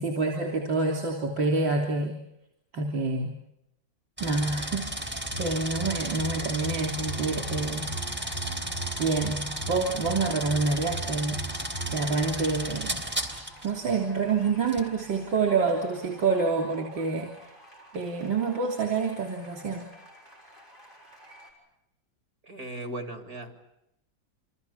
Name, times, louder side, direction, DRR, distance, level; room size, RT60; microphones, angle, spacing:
voice 1, 0.0-2.2 2.7-3.3 4.2-7.9 9.0-11.5 11.9-13.0 13.6-17.3 17.9-19.9, right 4 dB, 70° right, 2 dB, 4.1 m, -27 dB
sound 1, 4.2-13.7 14.7-14.9, right 1 dB, 5° right, 3.1 m, -34 dB
sound 2, 5.3-11.9, right 2 dB, 80° left, 6.9 m, -39 dB
sound 3, 6.7-21.5, right 1 dB, 25° left, 6.6 m, -50 dB
voice 2, 22.4-23.5, right 1 dB, 50° right, 6 dB, 3.3 m, -37 dB
29.0 x 26.0 x 7.1 m, 0.85 s
omnidirectional pair, 2.1 m